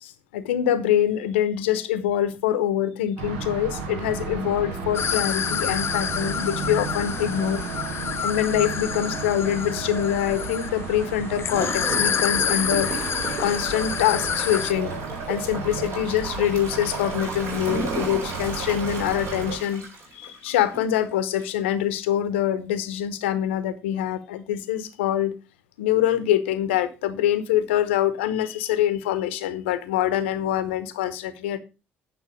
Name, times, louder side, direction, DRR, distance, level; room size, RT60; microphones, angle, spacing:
voice 1, 0.0-7.6 8.2-12.9 13.4-14.9 15.3-19.8 20.1-25.3 25.8-31.6, left 11 dB, 80° left, 0.8 m, -24 dB
sound 1, 3.2-19.6, right 4 dB, 75° right, 1.5 m, -33 dB
sound 2, 4.9-14.7, left 8 dB, 40° left, 0.5 m, -28 dB
Gurgling / Toilet flush, 11.5-20.9 21.4-21.5, right 3 dB, 50° right, 3.8 m, -34 dB
9.2 x 5.7 x 5.2 m
hypercardioid pair, 55°, 6 cm